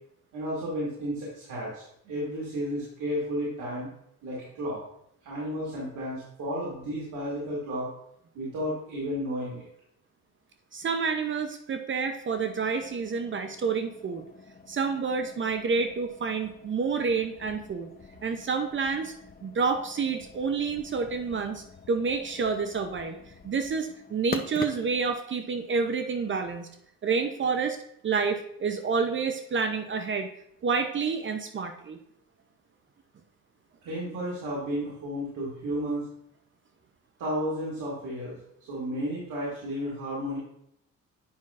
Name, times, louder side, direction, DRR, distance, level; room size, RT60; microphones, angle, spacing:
voice 1, 0.3-3.9 4.2-4.8 5.2-7.9 8.3-9.7 33.8-36.0 37.2-38.4 38.7-40.4, equal, 85° right, -7 dB, 2.2 m, -32 dB
voice 2, 10.7-14.2 14.7-17.9 18.2-19.1 19.4-23.1 23.4-26.7 27.0-27.8 28.0-30.3 30.6-32.0, right 5 dB, 40° right, 7 dB, 0.6 m, -29 dB
sound 1, 12.3-25.2, left 6 dB, 30° left, 0.6 m, -45 dB
8.7 x 5.5 x 2.5 m, 0.74 s
cardioid pair, 90°, 30 cm